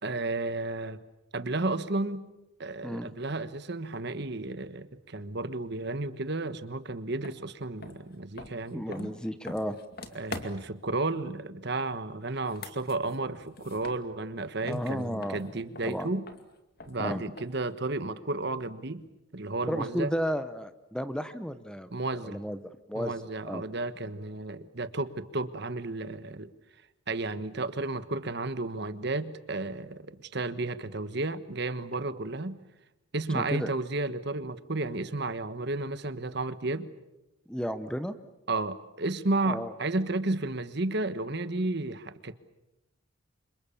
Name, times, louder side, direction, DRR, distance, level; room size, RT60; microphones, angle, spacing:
voice 1, 0.0-1.0 1.3-2.3 2.6-9.1 10.1-16.2 16.9-19.0 19.3-20.2 21.9-22.4 22.9-26.5 27.1-32.6 33.1-36.9 38.5-42.3, right 2 dB, 55° right, 12 dB, 1.3 m, -32 dB
sound 1, 7.2-7.4 7.8-10.8 12.3-14.4 14.7-17.7, left 3 dB, 45° left, 2.4 m, -45 dB
voice 2, 8.7-9.8 14.6-15.4 15.8-16.1 17.0-17.2 19.7-21.9 22.2-23.1 23.5-23.6 33.3-33.7 37.5-38.2 39.5-39.7, equal, 5° left, 11 dB, 0.9 m, -33 dB
29.5 x 26.0 x 7.2 m, 0.92 s
head